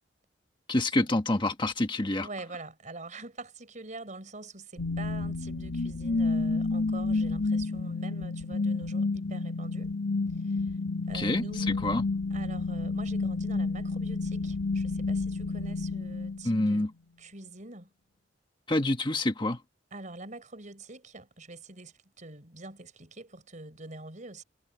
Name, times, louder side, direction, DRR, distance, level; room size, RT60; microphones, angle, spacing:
voice 1, 0.7-2.3 11.1-11.4 11.8-12.0 16.4-16.9 18.7-19.6, left 1 dB, 25° left, 1.4 m, -27 dB
voice 2, 2.2-9.9 10.3-10.7 11.1-11.9 12.3-16.9 17.2-17.9 19.9-24.4, right 2 dB, 45° right, 5.0 m, -45 dB
sound 1, 4.8-16.8, left 3 dB, 80° left, 2.0 m, -30 dB
head